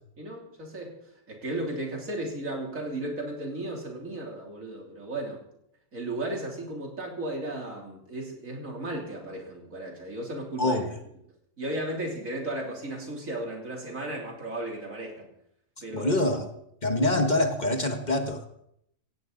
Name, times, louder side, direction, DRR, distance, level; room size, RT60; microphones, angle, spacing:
voice 1, 0.2-1.0 1.3-5.4 5.9-10.8 11.6-15.3 15.8-16.1, right 1 dB, 90° right, 0 dB, 3.7 m, -35 dB
voice 2, 10.6-10.9 15.9-16.5 16.8-18.5, left 1 dB, 35° left, 5 dB, 1.4 m, -25 dB
17.0 x 16.5 x 4.0 m, 0.75 s
omnidirectional pair, 1.4 m